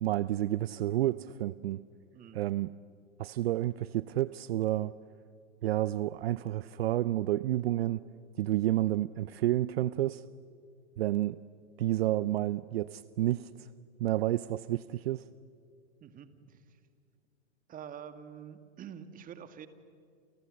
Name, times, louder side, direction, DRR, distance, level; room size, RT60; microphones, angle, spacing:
voice 1, 0.0-1.8 2.3-2.7 3.2-4.9 5.6-8.1 8.4-10.2 11.0-11.4 11.8-13.7 14.0-15.3, right 14 dB, 60° right, 17 dB, 0.7 m, -30 dB
voice 2, 16.0-16.8 17.7-19.7, right 8 dB, 25° right, 10 dB, 2.0 m, -47 dB
29.5 x 29.5 x 6.5 m, 2.3 s
hypercardioid pair, 115°, 34 cm